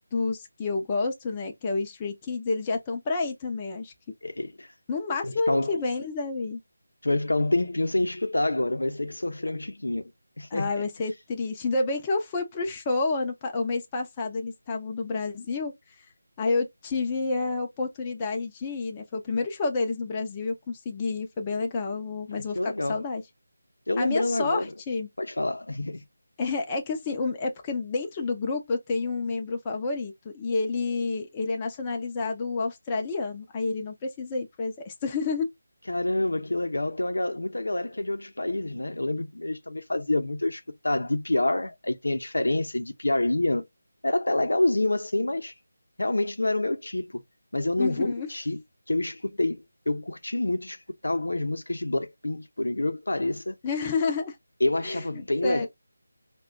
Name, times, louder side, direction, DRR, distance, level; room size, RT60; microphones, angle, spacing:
voice 1, 0.1-3.9 4.9-6.6 10.5-15.7 16.4-23.2 24.0-25.1 26.4-35.5 47.8-48.3 53.6-54.4 54.8-55.7, left 3 dB, 20° left, 0.5 m, -29 dB
voice 2, 4.2-4.7 5.2-5.8 7.0-10.0 10.4-10.8 22.3-23.1 23.9-24.7 25.2-26.0 35.9-43.6 44.0-45.5 46.0-47.2 47.5-48.6 48.9-50.8 51.0-53.6 54.6-55.7, left 2 dB, 85° left, 0.6 m, -27 dB
4.8 x 2.2 x 2.2 m
figure-of-eight pair, 170°, 0 cm